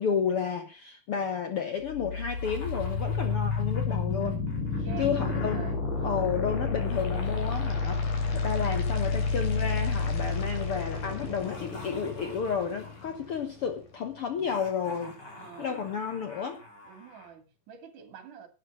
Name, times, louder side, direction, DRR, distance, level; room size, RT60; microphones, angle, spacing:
voice 1, 0.0-4.4 5.0-5.6 6.0-15.2 15.6-16.6, left 7 dB, 55° left, 1.7 m, -31 dB
sound 1, 1.8-13.8, left 4 dB, 70° left, 4.7 m, -30 dB
Laughter, 2.3-5.7 6.7-10.0 11.2-13.3 14.4-17.3, left 2 dB, 30° left, 4.1 m, -49 dB
voice 2, 4.8-6.3 10.2-10.6 15.4-15.9 16.8-18.5, right 7 dB, 70° right, 3.9 m, -47 dB
12.0 x 9.2 x 6.1 m
omnidirectional pair, 3.8 m